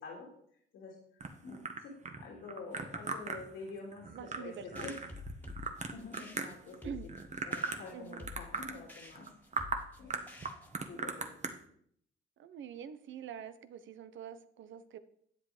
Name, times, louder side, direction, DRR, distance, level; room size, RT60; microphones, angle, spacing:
sound 1, 1.2-6.8 7.1-8.8 9.2-9.3 9.5-9.8 10.1-11.5, right 4 dB, 35° right, 1.5 m, -38 dB
voice 1, 1.4-1.9 2.2-5.0 5.9-6.9 7.4-9.3 10.0-10.4 10.9-11.3, left 4 dB, 85° left, -1 dB, 2.7 m, -47 dB
voice 2, 4.1-5.0 6.8-7.1 7.9-8.3 12.4-15.0, right 8 dB, 75° right, 12 dB, 1.0 m, -45 dB
sound 2, 4.8-10.9, left 4 dB, 10° left, 1.8 m, -50 dB
11.0 x 7.9 x 5.0 m, 0.66 s
cardioid pair, 90°, 20 cm